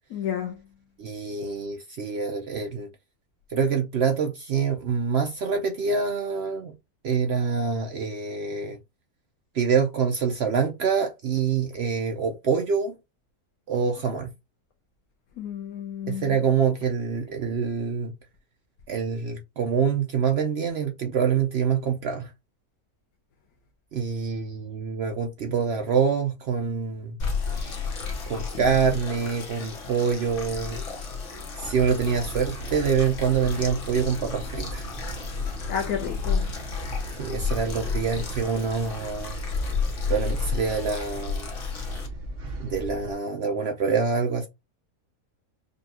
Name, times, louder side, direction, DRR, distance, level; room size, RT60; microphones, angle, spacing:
voice 1, 0.1-0.5 15.4-16.3 35.7-36.5, left 8 dB, 85° left, 1.2 m, -31 dB
voice 2, 1.0-2.9 3.5-6.7 7.0-8.8 9.5-12.9 13.7-14.3 16.1-18.1 18.9-22.3 23.9-27.2 27.5-27.8 28.3-30.8 31.6-34.9 37.2-39.4 40.1-41.5 42.6-44.5, right 6 dB, 65° right, 0.7 m, -26 dB
sound 1, 27.2-42.1, left 5 dB, 55° left, 1.2 m, -32 dB
sound 2, 31.6-43.1, right 1 dB, 45° right, 1.0 m, -37 dB
5.2 x 2.3 x 2.8 m
omnidirectional pair, 1.6 m